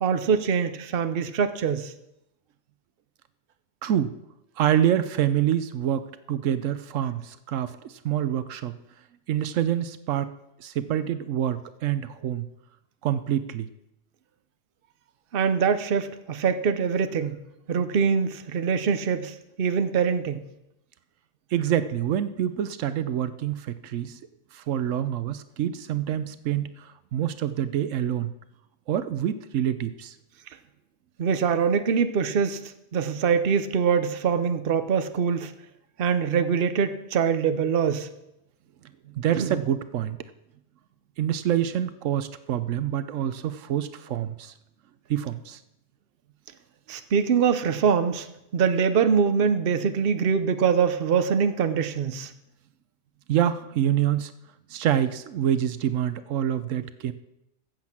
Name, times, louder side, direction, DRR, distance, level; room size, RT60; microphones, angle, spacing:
voice 1, 0.0-1.9 15.3-17.4 17.7-20.4 31.2-32.6 32.9-35.5 36.0-38.1 39.4-39.6 46.9-48.3 48.5-52.3, right 6 dB, 50° right, 10 dB, 0.9 m, -23 dB
voice 2, 3.8-4.1 4.6-8.7 9.3-10.3 10.6-12.5 13.0-13.7 21.5-24.2 24.5-28.3 28.9-30.1 39.2-40.2 41.2-44.5 45.1-45.6 53.3-54.3 54.7-57.1, right 10 dB, 85° right, 13 dB, 1.0 m, -26 dB
15.0 x 7.8 x 6.0 m, 0.87 s
omnidirectional pair, 1.3 m